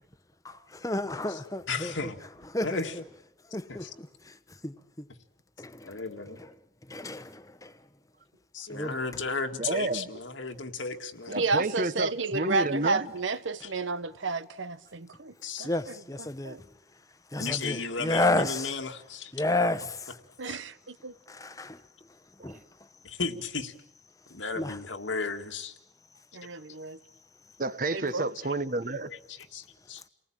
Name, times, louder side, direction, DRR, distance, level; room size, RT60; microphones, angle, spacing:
voice 1, 0.4-1.9 2.5-2.8 3.5-4.4 4.6-5.0 5.6-6.0 6.4-6.5 6.9-7.7 8.7-9.0 15.6-16.6 17.3-18.8 19.3-20.2 21.6-21.7 22.4-22.6 24.6-24.8, left 2 dB, 20° left, 1.0 m, -31 dB
voice 2, 1.7-2.2 2.6-2.9 3.7-3.9 5.8-6.4 8.5-11.4 15.4-15.7 17.4-19.3 20.5-20.6 23.0-23.7 24.3-25.7 29.1-30.0, left 4 dB, 90° left, 2.1 m, -34 dB
voice 3, 9.6-10.1 11.3-13.1 22.4-22.5 27.6-29.1, right 2 dB, 45° right, 1.1 m, -30 dB
voice 4, 11.3-15.3 15.6-16.6 20.4-20.7 21.0-21.1 26.3-27.0 27.9-28.3, right 4 dB, 85° right, 1.1 m, -31 dB
29.5 x 19.5 x 8.9 m
head